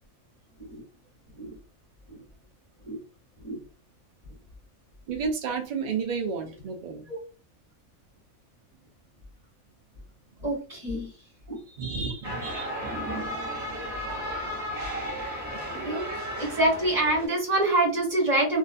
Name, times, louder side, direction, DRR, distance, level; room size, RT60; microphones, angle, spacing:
voice 1, 5.1-7.1 11.8-12.7, right 5 dB, 55° right, 0.5 m, -31 dB
voice 2, 10.4-11.1 11.5-11.6 12.0-12.1 13.1-13.3 15.3-18.6, right 2 dB, 30° right, 1.1 m, -27 dB
sound 1, 12.2-17.3, equal, 15° right, 0.7 m, -34 dB
2.5 x 2.4 x 2.4 m
omnidirectional pair, 1.4 m